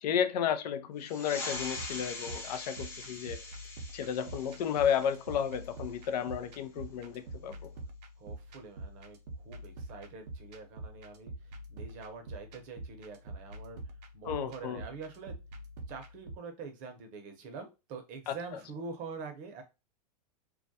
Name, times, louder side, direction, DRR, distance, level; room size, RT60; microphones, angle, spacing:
voice 1, 0.0-3.4 3.9-7.7 14.2-14.8 18.3-18.4, left 8 dB, 80° left, 0.5 m, -32 dB
sound 1, 1.0-6.1, left 2 dB, 10° left, 0.5 m, -43 dB
sound 2, 1.5-16.4, right 1 dB, 80° right, 0.5 m, -46 dB
voice 2, 8.2-11.3 11.7-13.8 14.1-15.3 15.9-19.6, right 4 dB, 40° right, 0.7 m, -45 dB
2.3 x 2.2 x 2.6 m
supercardioid pair, 130°, 21 cm